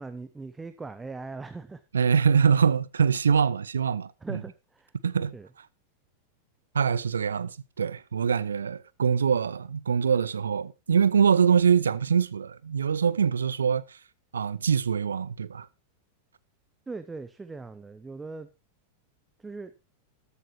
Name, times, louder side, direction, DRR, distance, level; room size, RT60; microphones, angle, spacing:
voice 1, 0.0-1.8 4.2-4.9 5.3-5.5 16.9-18.5 19.4-19.7, right 3 dB, 10° right, 0.8 m, -40 dB
voice 2, 1.9-4.4 5.0-5.3 6.7-14.0 14.3-15.7, right 6 dB, 70° right, 0.6 m, -24 dB
13.5 x 13.0 x 3.1 m
figure-of-eight pair, 90°, 0 cm